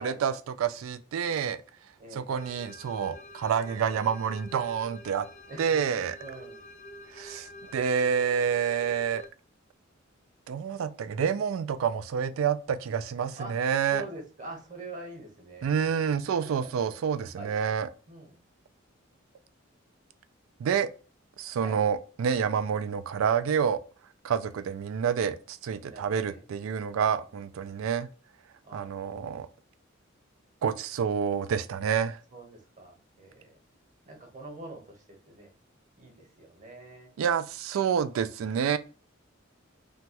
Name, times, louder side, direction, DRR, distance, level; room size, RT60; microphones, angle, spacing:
voice 1, 0.0-1.6 2.1-5.3 5.6-6.2 7.1-9.2 10.5-14.0 15.6-17.9 20.6-20.9 21.4-23.8 24.2-28.1 28.7-29.5 30.6-32.2 37.2-38.8, right 7 dB, 90° right, 0.3 m, -28 dB
voice 2, 2.0-2.3 5.5-6.6 13.4-13.5 13.9-16.1 16.4-17.0 17.4-17.8 18.1-18.4 21.6-21.8 25.8-26.4 26.9-27.1 28.6-28.9 32.3-33.6 34.1-35.5 36.0-37.1, right 1 dB, 40° right, 0.9 m, -45 dB
sound 1, 2.3-9.3, left 1 dB, 40° left, 0.3 m, -48 dB
2.9 x 2.2 x 2.8 m
head